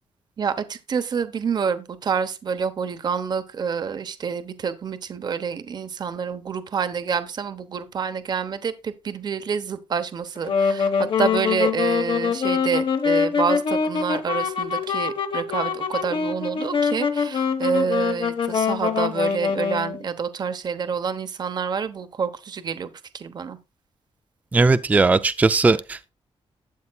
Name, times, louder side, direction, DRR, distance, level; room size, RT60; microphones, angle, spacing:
voice 1, 0.4-10.9 11.2-23.6, right 6 dB, 45° right, 0.9 m, -27 dB
Wind instrument woodwind instrument, 10.3-20.0, left 6 dB, 55° left, 1.3 m, -24 dB
voice 2, 24.5-26.1, right 3 dB, 15° right, 0.4 m, -18 dB
12.0 x 8.5 x 2.3 m
wide cardioid pair, 170°, 10 cm